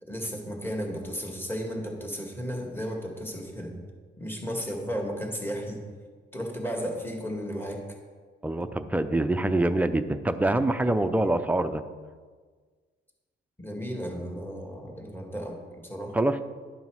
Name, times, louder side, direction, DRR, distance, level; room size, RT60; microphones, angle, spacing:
voice 1, 0.0-3.7 4.2-5.8 6.3-7.9 11.2-11.3 13.6-16.2, equal, 10° left, 1 dB, 1.7 m, -34 dB
voice 2, 8.4-11.8 16.1-16.5, right 1 dB, 5° right, 9 dB, 0.5 m, -25 dB
11.0 x 5.5 x 4.7 m, 1.5 s
cardioid pair, 90°, 20 cm